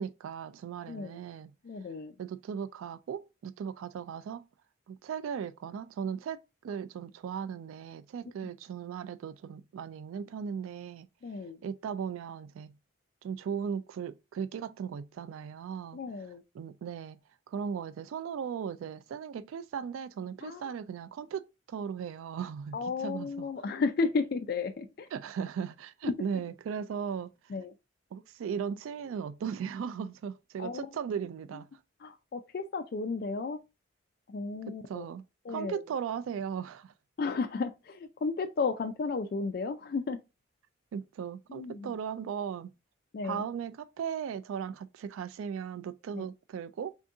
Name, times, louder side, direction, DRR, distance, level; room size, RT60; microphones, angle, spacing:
voice 1, 0.0-1.5 2.2-4.5 4.9-11.1 11.6-12.7 13.2-16.0 16.5-17.2 17.5-23.5 25.1-27.3 28.1-31.7 34.9-35.2 35.5-36.9 40.9-42.7 43.2-47.0, right 7 dB, 90° right, 0.3 m, -37 dB
voice 2, 0.9-1.2 1.6-2.1 11.2-11.6 15.9-16.4 20.4-20.7 22.7-25.1 26.0-26.1 27.5-27.7 30.6-30.9 32.0-33.6 34.3-35.0 35.4-35.8 37.2-40.2 41.5-41.9 43.1-43.4 46.1-46.3, left 4 dB, 50° left, 0.3 m, -33 dB
3.5 x 2.7 x 3.4 m
head